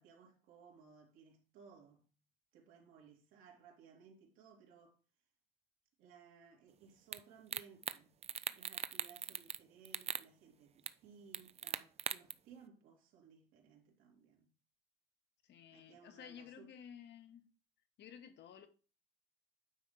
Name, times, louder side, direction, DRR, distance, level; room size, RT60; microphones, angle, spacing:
voice 1, 0.0-2.1 2.5-5.0 6.0-8.1 8.5-14.5 15.7-16.7, right 6 dB, 80° right, 2.6 m, -61 dB
sound 1, 7.1-7.2 7.5-8.0 8.2-9.6 9.9-10.2 10.9-11.0 11.3-12.3, right 9 dB, 30° right, 0.4 m, -39 dB
voice 2, 15.4-17.4 18.0-18.7, left 8 dB, 60° left, 1.1 m, -54 dB
9.2 x 3.6 x 5.6 m
cardioid pair, 115°, 21 cm